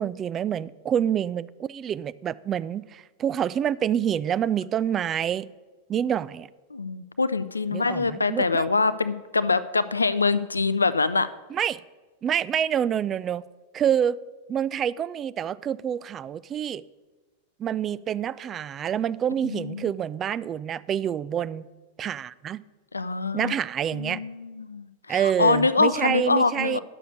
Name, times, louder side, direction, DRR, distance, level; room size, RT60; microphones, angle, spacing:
voice 1, 0.0-5.5 5.9-6.5 7.7-8.7 11.5-11.8 12.2-13.4 13.7-14.2 14.5-16.8 17.6-21.7 22.0-22.6 23.3-24.2 25.1-26.8, right 9 dB, 25° right, 17 dB, 0.3 m, -27 dB
voice 2, 6.7-11.3 19.4-19.8 22.9-23.5 23.9-26.8, left 3 dB, 80° left, 15 dB, 0.4 m, -24 dB
10.5 x 6.7 x 6.4 m, 1.2 s
figure-of-eight pair, 90°, 0 cm